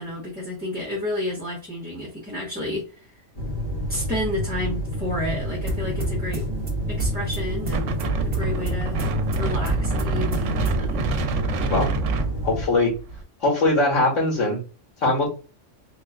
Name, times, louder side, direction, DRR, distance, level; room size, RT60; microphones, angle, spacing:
voice 1, 0.0-3.2 3.9-6.4 6.9-9.0 9.3-11.1 11.6-11.8, left 1 dB, 10° right, -5 dB, 1.1 m, -31 dB
sound 1, 3.4-12.7, equal, 50° left, 1.7 m, -29 dB
sound 2, 5.7-11.0, right 2 dB, 35° right, 1.2 m, -33 dB
Wind, 7.7-13.2, right 3 dB, 75° right, 1.0 m, -27 dB
voice 2, 12.4-12.9 13.4-14.6 15.0-15.3, left 2 dB, 80° left, -1 dB, 2.0 m, -21 dB
3.6 x 3.1 x 2.3 m, 0.34 s
omnidirectional pair, 1.3 m